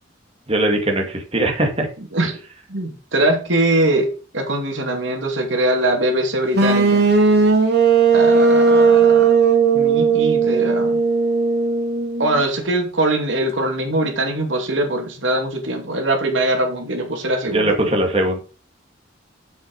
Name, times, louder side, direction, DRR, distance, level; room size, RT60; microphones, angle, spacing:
voice 1, 0.5-1.9 17.5-18.4, right 1 dB, 30° right, 2 dB, 2.2 m, -20 dB
voice 2, 2.7-4.1 4.3-7.1 8.1-9.3 9.7-11.0 12.2-18.0, right 1 dB, 75° right, 3 dB, 2.7 m, -22 dB
sound 1, 6.5-12.4, right 5 dB, 55° right, 2.3 m, -16 dB
7.4 x 6.8 x 5.4 m, 0.35 s
head